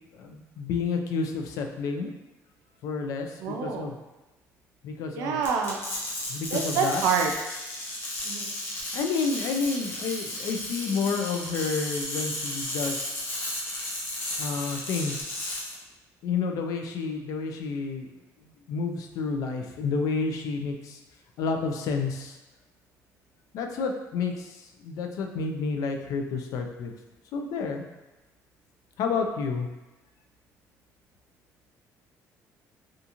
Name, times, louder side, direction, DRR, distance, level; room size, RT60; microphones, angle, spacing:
voice 1, 0.1-2.1 2.8-4.0 4.8-5.4 6.3-7.0 8.9-13.1 14.4-15.4 16.2-18.1 18.7-21.0 21.4-22.4 23.5-26.9 27.3-27.8 29.0-29.7, left 4 dB, 65° left, 4 dB, 0.3 m, -30 dB
voice 2, 3.4-3.9 5.1-5.8 6.5-7.3 8.2-8.5, right 6 dB, 80° right, 2 dB, 0.4 m, -27 dB
sound 1, 5.4-15.7, left 1 dB, 35° left, 0.7 m, -34 dB
2.4 x 2.4 x 2.8 m, 1.0 s
cardioid pair, 140°, 6 cm